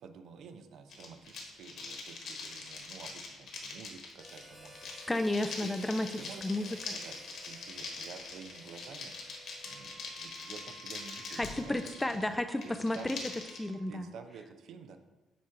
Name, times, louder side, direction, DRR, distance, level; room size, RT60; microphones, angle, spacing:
voice 1, 0.0-5.2 5.6-5.7 6.0-9.2 9.6-11.8 12.1-12.2 12.6-13.3 13.9-15.0, right 6 dB, 65° right, 8 dB, 0.6 m, -50 dB
sound 1, 0.9-13.6, left 3 dB, 60° left, 1.3 m, -43 dB
Harmonica, 4.2-10.2, equal, 15° right, 0.9 m, -55 dB
voice 2, 5.1-6.1 6.4-6.9 11.4-13.2 13.6-14.1, left 1 dB, 10° left, 9 dB, 0.3 m, -32 dB
Wind instrument woodwind instrument, 9.6-14.1, right 6 dB, 45° right, 1.6 m, -58 dB
7.1 x 4.5 x 3.6 m, 1.1 s
cardioid pair, 140°, 0 cm